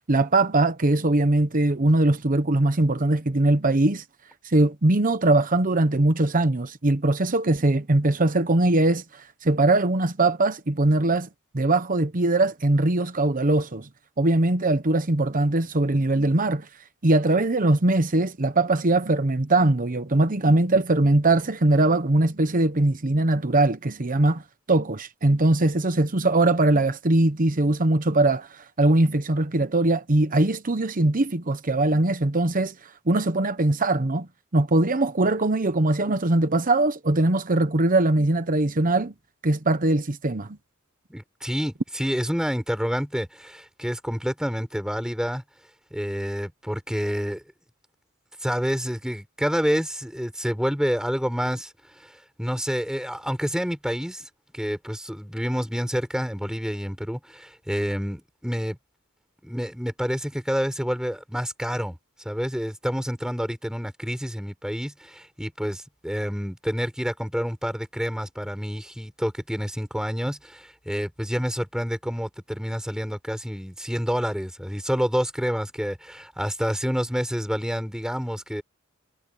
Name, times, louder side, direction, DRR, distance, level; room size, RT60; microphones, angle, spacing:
voice 1, 0.1-4.0 4.4-11.3 11.5-13.9 14.2-16.7 17.0-24.4 24.7-32.7 33.1-34.3 34.5-39.1 39.4-40.5, right 2 dB, 40° right, 1.0 m, -21 dB
voice 2, 41.1-45.4 45.9-47.4 48.4-51.7 52.0-52.1 52.4-54.3 54.5-58.8 59.4-62.0 62.2-78.6, equal, 5° right, 5.6 m, -28 dB
head